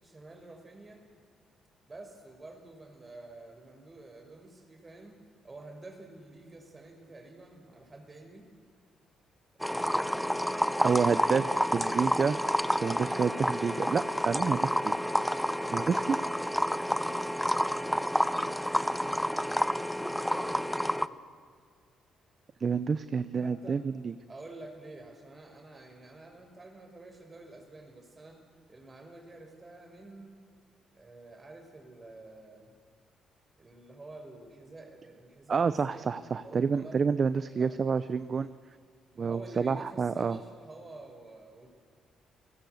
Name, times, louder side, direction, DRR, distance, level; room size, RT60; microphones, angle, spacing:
voice 1, 0.0-1.0 1.8-5.2 5.4-8.5 9.5-11.4 16.6-19.8 20.2-21.2 23.4-23.8 24.3-28.4 28.7-30.3 30.9-32.7 33.6-36.1 36.4-37.0 37.6-37.8 39.2-41.7, right 2 dB, 25° right, 5 dB, 5.4 m, -49 dB
sound 1, 9.6-21.1, equal, ahead, 0.8 m, -29 dB
voice 2, 10.8-11.4 11.7-12.4 12.8-14.9 15.7-16.2 22.6-24.1 35.5-38.5 39.2-40.4, right 5 dB, 40° right, 14 dB, 0.8 m, -28 dB
29.0 x 18.0 x 8.1 m, 2.1 s
cardioid pair, 90°, 0 cm